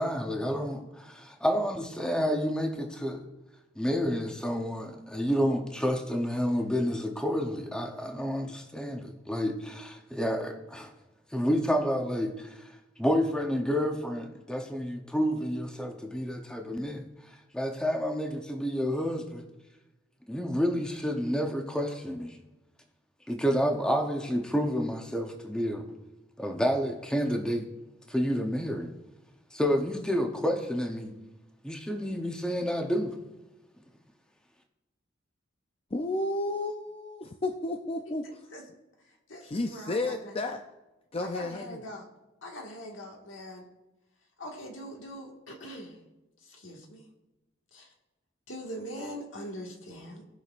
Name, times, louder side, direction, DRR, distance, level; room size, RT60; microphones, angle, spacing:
voice 1, 0.0-3.2 3.8-10.9 11.3-12.7 13.0-17.1 17.5-19.4 20.3-22.4 23.3-25.8 26.4-27.6 28.1-28.9 29.5-31.1 31.6-33.1, equal, 5° left, 3 dB, 0.8 m, -29 dB
voice 2, 35.9-38.4 39.4-40.6 41.1-41.8, left 2 dB, 30° left, 5 dB, 0.5 m, -32 dB
voice 3, 39.3-40.3 41.2-42.1 42.4-43.7 44.4-46.0 46.4-47.0 47.7-47.9 48.5-50.2, equal, 75° left, 1 dB, 1.8 m, -42 dB
18.0 x 6.1 x 2.5 m, 1.0 s
head